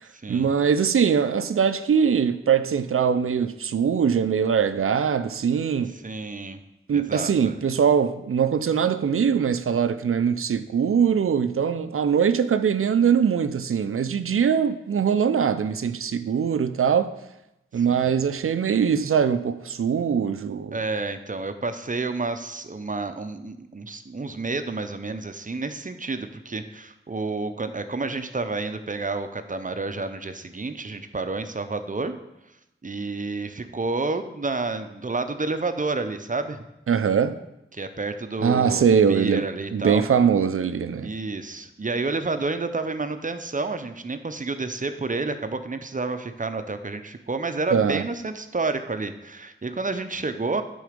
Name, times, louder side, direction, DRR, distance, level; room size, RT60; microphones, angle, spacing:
voice 1, 0.3-5.9 6.9-17.1 17.7-20.8 36.9-37.4 38.4-39.4 39.7-41.1 47.7-48.0, right 7 dB, 90° right, 0.4 m, -22 dB
voice 2, 6.0-6.6 6.9-7.6 17.8-18.2 20.7-32.1 32.8-36.6 37.7-38.8 39.1-40.1 41.0-50.6, right 3 dB, 40° right, 0.6 m, -30 dB
9.5 x 3.9 x 5.1 m
wide cardioid pair, 55°, 21 cm